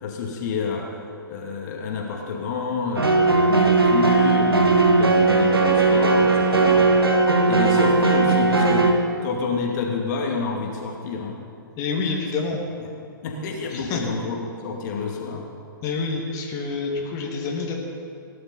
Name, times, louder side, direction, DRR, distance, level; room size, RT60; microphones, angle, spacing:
voice 1, 0.0-0.9 1.3-6.9 7.5-8.9 9.2-11.4 12.8-12.9 13.2-15.4, left 4 dB, 50° left, 0 dB, 2.4 m, -28 dB
sound 1, 3.0-8.9, right 3 dB, 85° right, 1.8 m, -18 dB
voice 2, 11.8-12.6 13.7-14.0 15.8-17.7, left 4 dB, 30° left, -2 dB, 2.2 m, -27 dB
18.0 x 11.0 x 5.6 m, 2.3 s
figure-of-eight pair, 120°, 12 cm